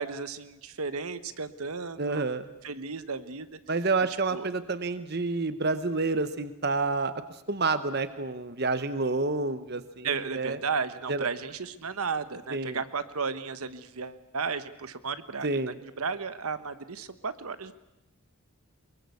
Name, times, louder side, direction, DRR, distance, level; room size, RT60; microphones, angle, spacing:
voice 1, 0.0-2.3 2.6-3.6 4.3-4.5 10.0-17.7, right 5 dB, 80° right, 12 dB, 1.2 m, -34 dB
voice 2, 2.0-2.5 3.7-7.1 7.5-10.1 10.3-10.6 11.1-11.3 12.5-12.8 15.4-15.7, right 3 dB, 45° right, 12 dB, 0.9 m, -28 dB
23.0 x 23.0 x 8.4 m, 0.94 s
head